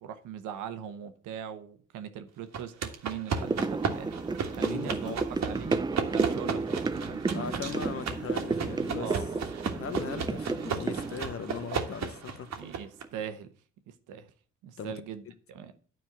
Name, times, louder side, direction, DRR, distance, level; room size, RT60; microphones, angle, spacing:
voice 1, 0.0-5.8 6.1-7.6 9.0-9.7 12.6-13.5 13.9-14.3 14.6-15.7, right 9 dB, 90° right, 1.1 m, -41 dB
sound 1, 2.5-13.0, right 6 dB, 60° right, 1.6 m, -35 dB
sound 2, 3.3-12.7 13.0-13.1, right 3 dB, 15° right, 0.4 m, -32 dB
voice 2, 4.5-5.3 7.3-9.2 9.7-12.7 14.8-14.9, left 7 dB, 45° left, 0.8 m, -39 dB
9.4 x 4.6 x 7.3 m
cardioid pair, 90°, 30 cm